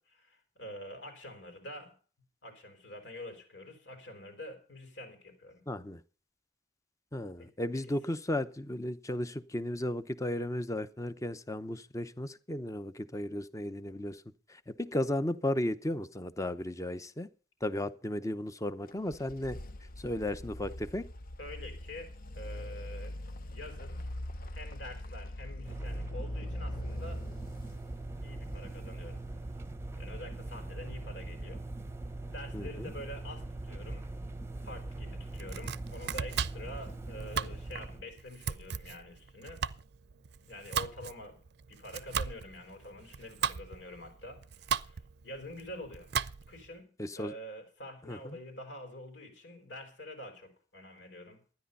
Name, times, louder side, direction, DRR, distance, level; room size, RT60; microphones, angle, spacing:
voice 1, 0.0-1.9 2.4-5.6 7.4-7.5 21.4-23.1 23.5-24.1 24.5-27.2 27.8-29.2 30.0-31.6 32.3-34.2 34.6-39.6 40.4-41.4 41.7-46.1 46.5-51.4, left 1 dB, 80° left, 5 dB, 4.5 m, -46 dB
voice 2, 5.7-6.0 7.1-14.2 14.5-17.3 17.6-19.6 20.0-21.1 32.5-32.9 47.0-47.3 48.1-48.4, left 1 dB, 20° left, 13 dB, 0.7 m, -35 dB
sound 1, 18.9-29.7, left 1 dB, 55° left, 0.7 m, -43 dB
sound 2, 25.6-38.0, right 2 dB, 15° right, 0.8 m, -41 dB
Domestic sounds home sounds, 35.3-46.7, right 7 dB, 65° right, 0.5 m, -37 dB
13.0 x 10.5 x 5.4 m, 0.39 s
head